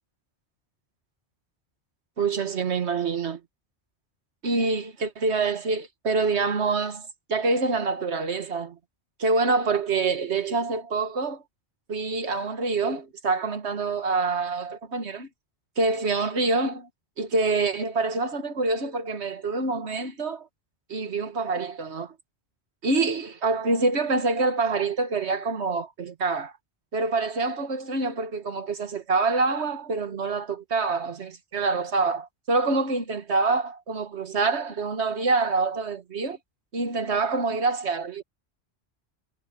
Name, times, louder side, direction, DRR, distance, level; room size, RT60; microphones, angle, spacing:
voice 1, 2.2-3.4 4.4-8.8 9.2-11.4 11.9-15.3 15.8-16.9 17.2-20.5 20.9-22.1 22.8-26.5 26.9-36.4 36.7-38.2, right 3 dB, 80° right, 1.8 m, -26 dB
omnidirectional pair, 1.1 m